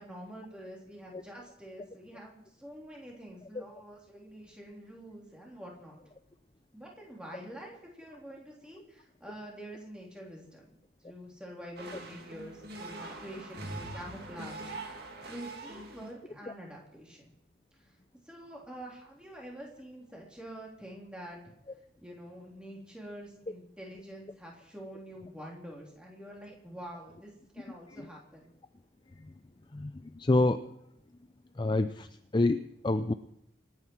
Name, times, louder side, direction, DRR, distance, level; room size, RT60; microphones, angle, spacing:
voice 1, 0.0-6.0 6.7-10.7 11.0-14.7 15.3-17.3 17.8-17.9 18.3-21.4 22.0-28.5, equal, 5° right, -2 dB, 3.4 m, -46 dB
sound 1, 11.8-16.2, right 2 dB, 55° right, 2.6 m, -43 dB
voice 2, 29.7-30.7 31.6-32.1 32.3-33.1, left 2 dB, 25° left, 10 dB, 0.4 m, -27 dB
26.0 x 9.5 x 4.6 m, 0.78 s
head